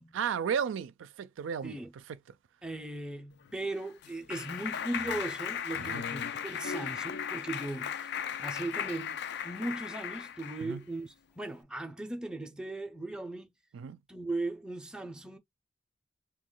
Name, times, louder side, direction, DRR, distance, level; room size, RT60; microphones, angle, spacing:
voice 1, 0.1-2.2 5.8-6.1 10.6-10.8 13.7-14.0, right 7 dB, 85° right, 0.3 m, -34 dB
voice 2, 2.6-8.1 8.4-13.5 14.1-15.4, right 2 dB, 5° right, 0.5 m, -38 dB
Clapping, 3.5-10.7, left 8 dB, 60° left, 0.4 m, -37 dB
2.9 x 2.2 x 3.8 m
head